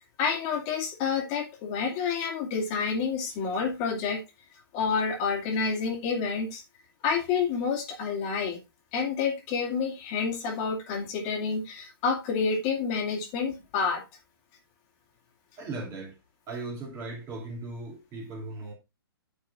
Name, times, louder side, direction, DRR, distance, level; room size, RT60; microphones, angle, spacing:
voice 1, 0.2-4.2 4.7-6.6 7.0-8.6 8.9-14.0, left 5 dB, 30° left, 2.3 m, -29 dB
voice 2, 15.6-16.2 16.5-18.7, right 2 dB, 25° right, 2.9 m, -37 dB
10.0 x 4.9 x 4.1 m
hypercardioid pair, 135°, 13 cm